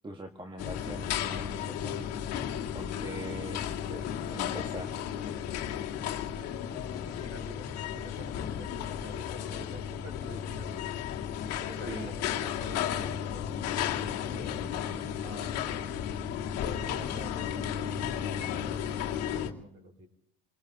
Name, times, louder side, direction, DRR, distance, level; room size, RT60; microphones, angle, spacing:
voice 1, 0.0-2.2 2.7-5.0 11.9-12.1, right 1 dB, 15° right, 3 dB, 1.5 m, -42 dB
sound 1, 0.6-19.5, left 9 dB, 55° left, 1.9 m, -34 dB
voice 2, 6.3-10.8 11.4-14.5 15.2-15.6 16.5-20.1, right 1 dB, 40° right, 5 dB, 5.6 m, -48 dB
26.5 x 19.0 x 2.9 m, 0.82 s
supercardioid pair, 95°, 31 cm